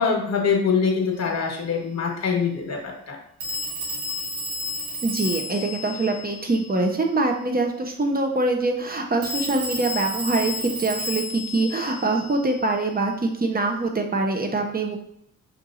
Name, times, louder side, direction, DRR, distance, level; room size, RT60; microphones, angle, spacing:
voice 1, 0.0-3.2, left 5 dB, 45° left, 2 dB, 1.4 m, -24 dB
Telephone, 1.1-1.3 3.4-7.1 9.2-12.9, left 1 dB, 80° right, 1.2 m, -32 dB
voice 2, 5.0-15.0, right 2 dB, 25° right, 3 dB, 1.0 m, -24 dB
6.1 x 2.8 x 2.6 m, 0.70 s
hypercardioid pair, 45°, 38 cm